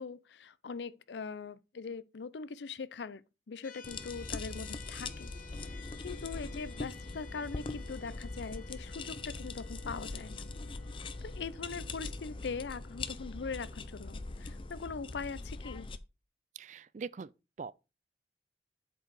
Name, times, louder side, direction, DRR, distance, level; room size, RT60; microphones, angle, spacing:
voice 1, 0.0-5.3 5.7-10.5 11.2-15.9, left 5 dB, 80° left, 0.5 m, -42 dB
sound 1, 3.6-14.8, left 4 dB, 50° left, 1.2 m, -55 dB
sound 2, 3.8-16.0, left 3 dB, 30° left, 0.5 m, -42 dB
voice 2, 16.6-17.3 17.6-17.7, right 5 dB, 45° right, 0.3 m, -42 dB
7.8 x 4.7 x 4.7 m
head